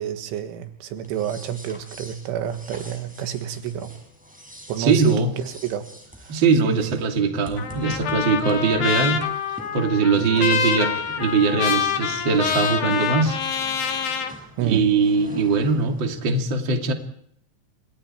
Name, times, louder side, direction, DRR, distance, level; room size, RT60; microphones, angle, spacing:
voice 1, 0.0-4.0 4.7-5.9 6.2-6.4 6.6-7.0 8.5-8.6 10.2-10.7 14.6-14.9, right 10 dB, 90° right, 8 dB, 4.0 m, -29 dB
sound 1, 1.0-16.2, equal, ahead, 5.4 m, -45 dB
voice 2, 4.8-5.3 6.3-13.4 14.6-16.9, right 4 dB, 30° right, 3 dB, 2.4 m, -21 dB
Trumpet, 7.6-14.3, left 8 dB, 55° left, 2.5 m, -26 dB
29.0 x 26.5 x 4.5 m, 0.67 s
omnidirectional pair, 5.4 m